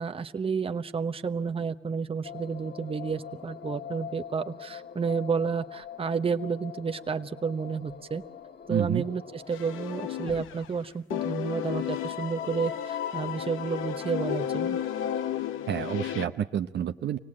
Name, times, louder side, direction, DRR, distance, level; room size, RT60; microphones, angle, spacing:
voice 1, 0.0-8.2 8.7-14.8, right 5 dB, 30° right, 7 dB, 1.0 m, -31 dB
sound 1, 2.2-9.6, left 9 dB, 55° left, 1.6 m, -44 dB
voice 2, 8.7-9.0 15.7-17.2, right 9 dB, 60° right, 8 dB, 0.8 m, -29 dB
sound 2, 9.5-10.8 11.1-16.2, left 10 dB, 90° left, 0.9 m, -32 dB
25.5 x 18.0 x 8.7 m, 0.92 s
cardioid pair, 90°, 20 cm